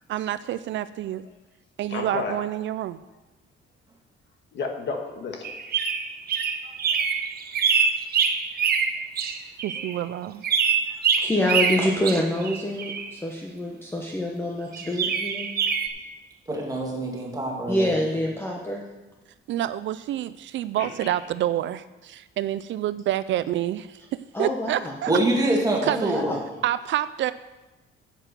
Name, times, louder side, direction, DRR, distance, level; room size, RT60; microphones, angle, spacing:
voice 1, 0.1-1.3 1.8-3.0 9.6-10.4 19.5-24.0 24.4-25.1 25.5-25.6 25.8-26.2 26.6-27.3, right 12 dB, 60° right, 14 dB, 0.4 m, -28 dB
voice 2, 1.9-2.4 4.5-5.5 6.6-6.7 10.9-11.0 20.8-21.1, left 4 dB, 55° left, 4 dB, 1.5 m, -32 dB
sound 1, 5.4-9.9 10.4-13.1 14.7-15.9, right 6 dB, 45° right, 0.9 m, -25 dB
voice 3, 11.2-15.5 17.7-18.8 24.3-24.9 25.9-26.4, left 1 dB, 10° left, -1 dB, 0.9 m, -26 dB
voice 4, 16.5-18.1 25.1-26.3, right 1 dB, 15° right, -1 dB, 2.2 m, -25 dB
9.0 x 8.0 x 6.7 m, 1.1 s
cardioid pair, 160°, 21 cm